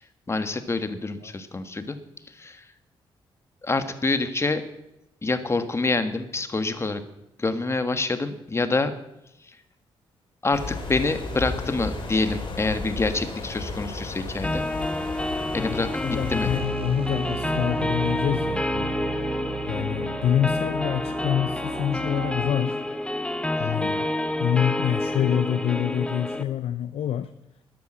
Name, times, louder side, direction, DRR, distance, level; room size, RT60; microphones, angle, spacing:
voice 1, 0.3-2.0 2.3-2.6 3.6-4.6 5.2-7.0 7.4-8.9 10.4-14.6 15.5-15.9 16.3-16.5 23.6-23.7, left 3 dB, 25° left, 10 dB, 1.6 m, -26 dB
sound 1, 10.5-16.6, left 3 dB, 55° left, 4.1 m, -33 dB
sound 2, 14.4-26.4, left 1 dB, 10° left, 1.0 m, -29 dB
voice 2, 16.0-18.9 19.7-22.8 23.6-24.1 24.4-27.3, left 10 dB, 75° left, 11 dB, 0.7 m, -26 dB
sound 3, 16.5-22.5, right 9 dB, 65° right, 0.6 m, -36 dB
13.0 x 10.5 x 7.5 m, 0.87 s
cardioid pair, 85°, 10 cm